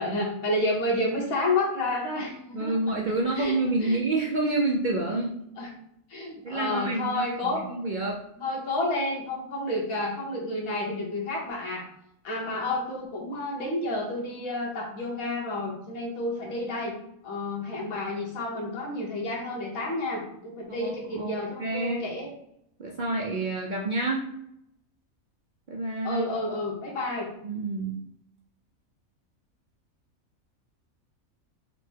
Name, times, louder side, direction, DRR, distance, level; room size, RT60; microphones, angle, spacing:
voice 1, 0.0-2.7 3.3-4.0 5.6-5.7 6.1-7.6 8.4-11.9 12.2-16.9 17.2-22.3 26.0-27.3, left 2 dB, 80° left, -3 dB, 1.5 m, -30 dB
voice 2, 2.5-5.4 6.4-8.2 20.7-22.0 22.8-24.3 25.7-26.2 27.4-28.0, right 2 dB, 75° right, -1 dB, 0.4 m, -28 dB
4.3 x 2.0 x 4.4 m, 0.76 s
omnidirectional pair, 1.4 m